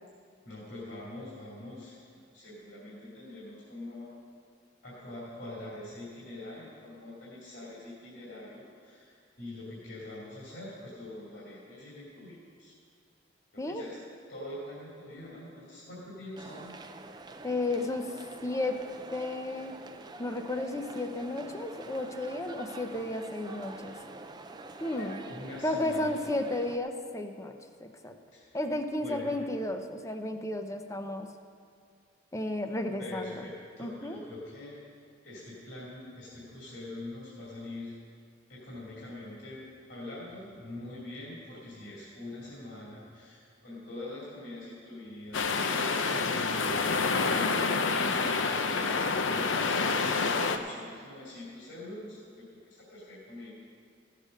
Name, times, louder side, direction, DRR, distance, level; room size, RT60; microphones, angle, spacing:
voice 1, 0.4-4.1 4.8-12.7 13.5-14.0 14.3-16.7 24.9-26.1 28.3-28.6 29.0-29.4 33.0-34.8 35.2-37.9 38.5-39.6 39.9-53.5, left 1 dB, 65° left, -8 dB, 2.6 m, -44 dB
sound 1, 16.4-26.8, right 2 dB, 20° right, 0.5 m, -46 dB
voice 2, 17.4-18.1 18.4-18.8 19.1-19.8 20.2-24.0 24.8-25.2 25.6-27.5 27.8-28.1 28.5-31.3 32.3-33.4 33.8-34.2, left 1 dB, 15° left, 6 dB, 0.7 m, -33 dB
sound 2, 45.3-50.6, left 4 dB, 80° left, 0.7 m, -28 dB
15.5 x 6.7 x 6.4 m, 2.3 s
head